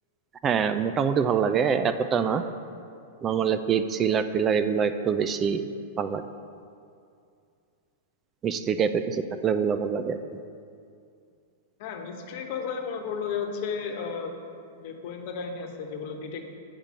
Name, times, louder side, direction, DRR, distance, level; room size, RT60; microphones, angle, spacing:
voice 1, 0.4-2.4 3.2-5.7 6.0-6.2 8.4-10.2, right 7 dB, 25° right, 10 dB, 0.4 m, -25 dB
voice 2, 11.8-14.3 14.8-16.5, left 6 dB, 55° left, 4 dB, 1.1 m, -33 dB
7.3 x 5.2 x 7.2 m, 2.4 s
hypercardioid pair, 115°, 0 cm